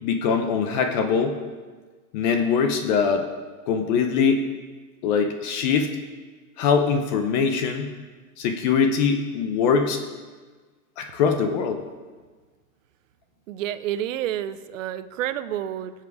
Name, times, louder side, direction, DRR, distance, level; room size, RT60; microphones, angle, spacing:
voice 1, 0.0-1.4 2.1-3.3 3.7-4.4 5.0-5.9 6.6-7.9 8.4-10.0 11.0-11.8, left 6 dB, 30° left, 6 dB, 0.7 m, -22 dB
voice 2, 13.5-15.9, right 11 dB, 55° right, 14 dB, 0.7 m, -29 dB
17.0 x 7.5 x 4.8 m, 1.4 s
supercardioid pair, 160°, 48 cm